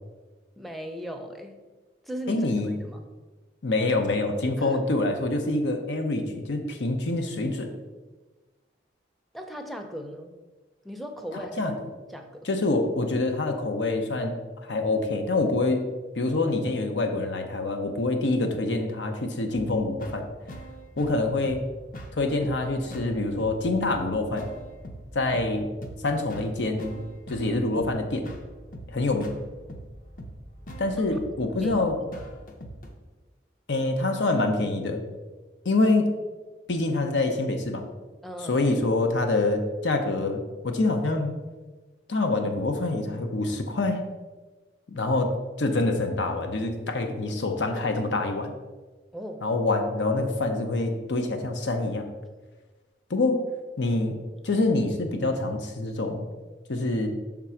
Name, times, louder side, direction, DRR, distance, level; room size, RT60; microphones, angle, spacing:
voice 1, 0.6-1.6 2.0-3.1 4.6-4.8 9.3-10.3 10.8-11.8 12.1-12.5 31.6-32.3 38.2-38.7 49.1-49.4, equal, ahead, 3 dB, 0.5 m, -38 dB
voice 2, 2.3-2.7 3.6-7.7 11.6-11.7 12.4-14.4 14.7-15.8 16.1-20.3 21.0-21.6 22.1-24.5 25.1-25.7 26.0-27.0 27.3-28.3 28.9-29.4 30.8-32.0 33.7-35.0 35.6-36.1 36.7-37.8 38.4-41.4 42.1-44.0 44.9-45.3 45.6-48.5 49.4-52.1 53.1-53.5 53.8-54.2 54.4-56.3 56.7-57.1, left 2 dB, 80° left, 5 dB, 0.7 m, -26 dB
sound 1, 19.5-32.9, equal, 45° left, 0.7 m, -42 dB
5.8 x 3.7 x 5.6 m, 1.3 s
head